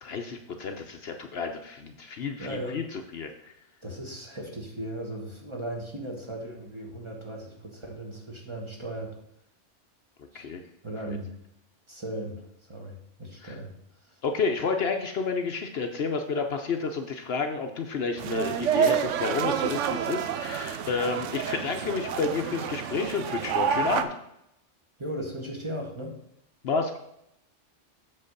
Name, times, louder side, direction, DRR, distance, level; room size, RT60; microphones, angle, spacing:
voice 1, 0.0-3.5 10.3-10.6 11.1-11.2 13.4-13.5 14.2-24.1 26.6-27.0, left 4 dB, 60° left, 5 dB, 0.9 m, -30 dB
voice 2, 2.4-2.8 3.8-9.2 10.3-10.5 10.8-11.3 11.9-13.7 14.0-14.2 25.0-26.1, right 1 dB, 25° right, -1 dB, 1.4 m, -37 dB
sound 1, 18.2-24.0, right 8 dB, 90° right, 0.9 m, -28 dB
7.7 x 3.9 x 6.6 m, 0.79 s
omnidirectional pair, 1.2 m